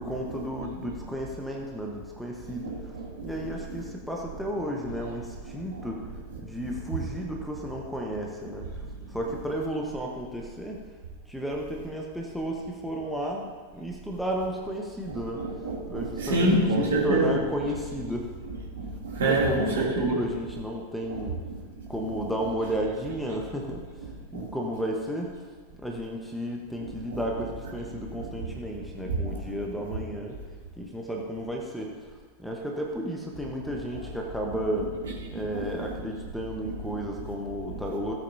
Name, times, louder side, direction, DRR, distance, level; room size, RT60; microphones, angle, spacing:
voice 1, 0.0-2.7 3.2-6.0 6.4-8.7 9.1-10.8 11.3-15.4 15.9-18.3 19.2-21.4 21.9-23.8 24.3-25.3 25.8-30.4 30.8-31.9 32.4-34.9 35.3-38.1, equal, ahead, -1 dB, 1.3 m, -33 dB
voice 2, 2.4-3.1 5.7-5.8 6.9-7.0 15.4-17.4 18.8-20.1 24.3-24.4 27.1-27.2 29.0-29.4 35.5-35.9 37.7-37.8, right 2 dB, 60° right, -4 dB, 3.0 m, -26 dB
16.5 x 8.6 x 2.8 m, 1.5 s
figure-of-eight pair, 90°, 0 cm